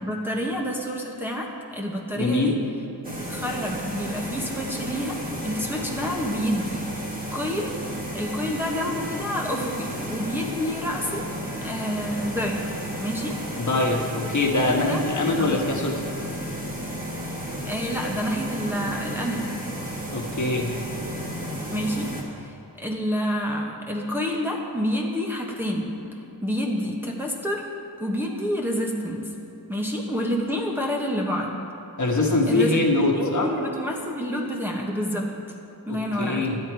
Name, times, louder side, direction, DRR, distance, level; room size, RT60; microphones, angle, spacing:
voice 1, 0.0-2.6 3.2-6.9 7.3-7.7 8.1-11.3 11.6-12.7 13.0-13.4 14.7-15.0 15.4-15.7 17.6-19.5 21.7-22.1 22.4-25.9 26.4-27.6 28.0-29.3 29.7-31.5 32.5-32.8 33.1-35.3 35.9-36.5, equal, 5° right, -2 dB, 1.1 m, -28 dB
voice 2, 2.1-2.6 13.6-16.0 20.1-20.7 32.0-33.5 35.9-36.6, left 2 dB, 50° left, 0 dB, 1.4 m, -23 dB
sound 1, 3.0-22.2, right 1 dB, 20° right, 1.8 m, -33 dB
12.0 x 8.6 x 4.7 m, 2.9 s
wide cardioid pair, 115°, 39 cm